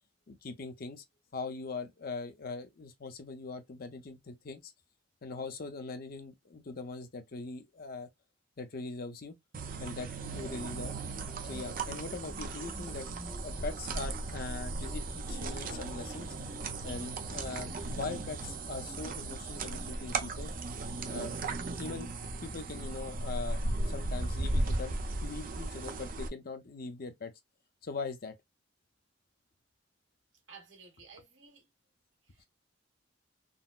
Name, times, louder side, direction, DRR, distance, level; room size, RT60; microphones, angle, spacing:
voice 1, 0.3-1.0 1.3-4.7 5.2-8.1 8.6-9.4 9.8-11.0 11.4-13.1 13.4-16.3 16.8-20.5 21.0-21.4 21.8-22.1 22.4-24.9 25.2-27.3 27.8-28.3, left 4 dB, 50° left, 0.6 m, -41 dB
sound 1, 9.5-26.3, right 2 dB, 45° right, 0.5 m, -36 dB
sound 2, 10.3-19.9, equal, ahead, 0.3 m, -51 dB
voice 2, 30.5-31.7 32.2-32.5, right 5 dB, 75° right, 1.6 m, -54 dB
3.9 x 2.0 x 2.3 m
head